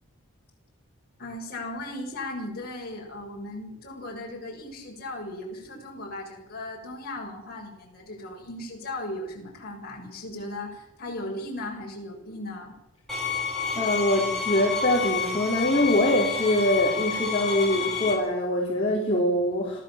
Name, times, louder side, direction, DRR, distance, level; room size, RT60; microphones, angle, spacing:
voice 1, 1.2-12.7, left 1 dB, 45° left, -1 dB, 7.4 m, -37 dB
sound 1, 13.1-18.1, left 5 dB, ahead, 6.6 m, -29 dB
voice 2, 13.7-19.8, left 1 dB, 25° left, -5 dB, 4.4 m, -24 dB
25.5 x 16.5 x 7.7 m, 0.82 s
head